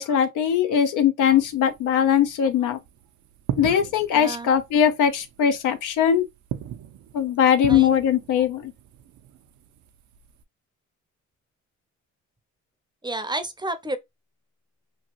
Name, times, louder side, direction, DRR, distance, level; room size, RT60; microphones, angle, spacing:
voice 1, 0.0-2.8 3.5-6.2 7.1-8.7, left 8 dB, 85° left, 0.7 m, -20 dB
sound 1, 1.2-10.4, right 11 dB, 70° right, 0.5 m, -38 dB
voice 2, 4.1-4.5 7.7-8.0 13.0-14.0, right 2 dB, 15° right, 0.6 m, -30 dB
3.1 x 2.3 x 2.9 m
cardioid pair, 90°, 30 cm